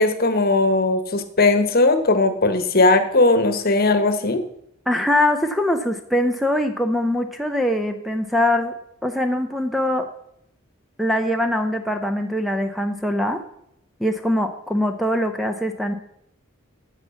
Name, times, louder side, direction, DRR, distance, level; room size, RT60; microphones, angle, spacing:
voice 1, 0.0-4.4, left 2 dB, 45° left, 10 dB, 1.1 m, -18 dB
voice 2, 4.9-8.7 9.0-10.1 11.0-13.4 14.0-15.9, left 1 dB, ahead, 6 dB, 0.6 m, -22 dB
9.8 x 7.1 x 6.9 m, 0.77 s
head